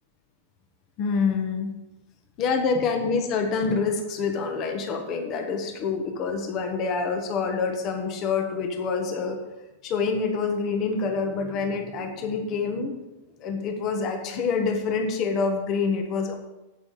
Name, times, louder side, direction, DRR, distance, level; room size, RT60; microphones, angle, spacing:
voice 1, 1.0-1.7 2.4-9.4 9.8-12.9 13.4-16.3, left 5 dB, 30° left, 4 dB, 1.4 m, -26 dB
8.9 x 8.5 x 5.7 m, 0.99 s
supercardioid pair, 160°, 0 cm